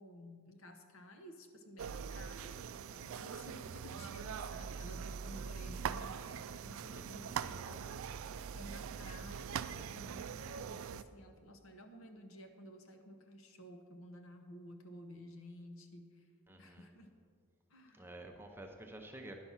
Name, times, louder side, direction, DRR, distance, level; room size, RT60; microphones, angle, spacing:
voice 1, 0.0-2.6 2.9-8.1 8.5-16.3 16.6-17.1 17.7-18.1, equal, 65° left, 5 dB, 0.9 m, -53 dB
sound 1, 1.8-11.0, right 7 dB, 65° right, 0.3 m, -42 dB
voice 2, 6.9-7.7 16.5-16.9 17.9-19.4, right 1 dB, 10° right, 3 dB, 0.6 m, -51 dB
10.5 x 5.9 x 5.7 m, 2.1 s
head